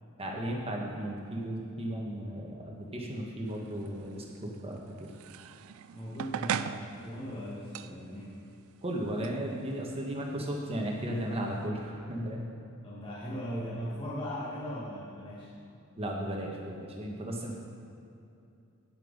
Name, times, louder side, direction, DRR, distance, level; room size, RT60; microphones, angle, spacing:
voice 1, 0.2-5.1 8.8-12.4 15.9-17.6, right 1 dB, 25° right, -1 dB, 1.1 m, -35 dB
sound 1, 3.5-11.7, right 8 dB, 65° right, 0.3 m, -41 dB
voice 2, 5.9-8.4 12.8-15.5, equal, 25° left, -7 dB, 1.5 m, -38 dB
8.8 x 7.6 x 5.2 m, 2.6 s
head